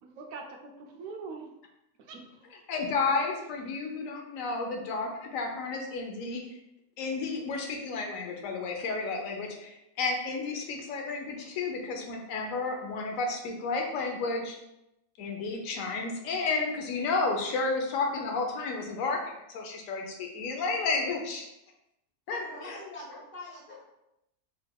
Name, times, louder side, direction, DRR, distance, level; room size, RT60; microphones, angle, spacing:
voice 1, 0.0-1.5 2.0-2.5, right 4 dB, 75° right, 2 dB, 1.0 m, -43 dB
voice 2, 2.7-6.4 7.0-14.6 15.2-19.2 19.5-21.5 22.3-22.8, left 3 dB, 70° left, 2 dB, 1.1 m, -32 dB
voice 3, 22.3-23.8, left 2 dB, 45° left, -3 dB, 0.8 m, -43 dB
4.6 x 3.4 x 2.2 m, 0.85 s
omnidirectional pair, 1.5 m